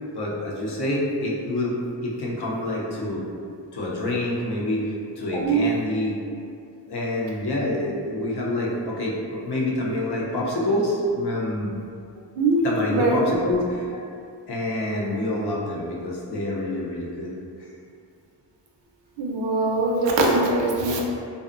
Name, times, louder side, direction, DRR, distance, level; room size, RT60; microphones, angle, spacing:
voice 1, 0.1-1.8 2.0-3.2 3.7-4.8 5.2-6.3 6.9-11.7 12.6-14.0 14.5-17.3 20.7-21.0, left 1 dB, 65° left, -4 dB, 0.6 m, -27 dB
voice 2, 5.3-5.7 12.4-13.2 19.2-21.0, right 2 dB, 80° right, -1 dB, 0.5 m, -22 dB
2.5 x 2.1 x 2.4 m, 2.3 s
wide cardioid pair, 90°, 43 cm